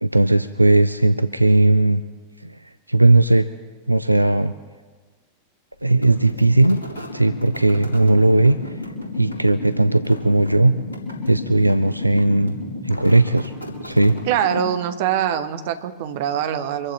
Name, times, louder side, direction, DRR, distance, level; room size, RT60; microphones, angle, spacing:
voice 1, 0.0-2.0 2.4-2.6 2.9-3.5 3.9-4.5 5.8-6.8 7.1-8.7 9.2-10.8 11.3-12.5 12.8-13.5 13.8-14.2, right 2 dB, 85° right, 13 dB, 0.4 m, -17 dB
sound 1, 5.9-14.9, left 2 dB, 75° left, 3.5 m, -33 dB
voice 2, 14.3-16.9, right 9 dB, 50° right, 9 dB, 1.2 m, -23 dB
25.0 x 14.5 x 3.1 m, 1.4 s
figure-of-eight pair, 90°, 0 cm